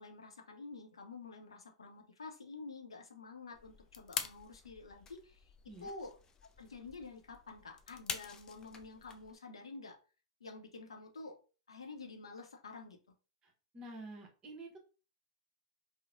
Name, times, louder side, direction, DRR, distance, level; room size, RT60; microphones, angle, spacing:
voice 1, 0.0-5.5 5.8-6.1 6.6-10.0 10.4-11.4 11.7-13.0, left 3 dB, 80° left, 2 dB, 0.6 m, -49 dB
sound 1, 3.5-9.4, left 6 dB, 25° left, 0.3 m, -46 dB
voice 2, 13.4-14.8, right 1 dB, 30° right, 1 dB, 0.9 m, -49 dB
3.0 x 2.0 x 2.5 m, 0.35 s
hypercardioid pair, 100°, 3 cm